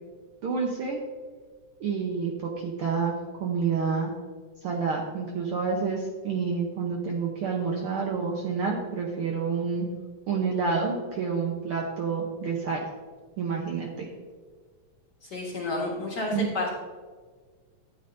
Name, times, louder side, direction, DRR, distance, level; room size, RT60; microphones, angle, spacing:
voice 1, 0.4-1.0 1.8-4.1 4.6-9.9 10.3-12.8 13.4-14.1 16.3-16.5, right 5 dB, 65° right, 0 dB, 1.5 m, -28 dB
voice 2, 15.2-16.7, left 2 dB, 45° left, -3 dB, 1.7 m, -30 dB
13.0 x 9.0 x 2.6 m, 1.5 s
omnidirectional pair, 3.3 m